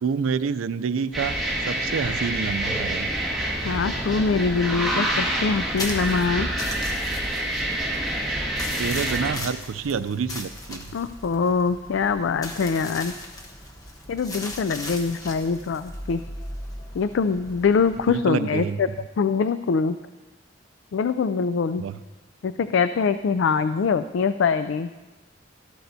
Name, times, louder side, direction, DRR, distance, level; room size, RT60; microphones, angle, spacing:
voice 1, 0.0-3.1 8.7-10.9 18.1-18.8 21.8-22.0, right 6 dB, 90° right, 15 dB, 0.4 m, -28 dB
sound 1, 1.1-9.3, right 1 dB, ahead, 1.7 m, -27 dB
voice 2, 3.6-6.5 10.9-13.1 14.1-16.2 16.9-18.9 19.2-20.0 20.9-21.8 22.4-24.9, left 5 dB, 65° left, 11 dB, 0.3 m, -23 dB
sound 2, 5.7-18.2, left 1 dB, 20° left, 1.0 m, -37 dB
14.0 x 12.0 x 2.7 m, 1.2 s
head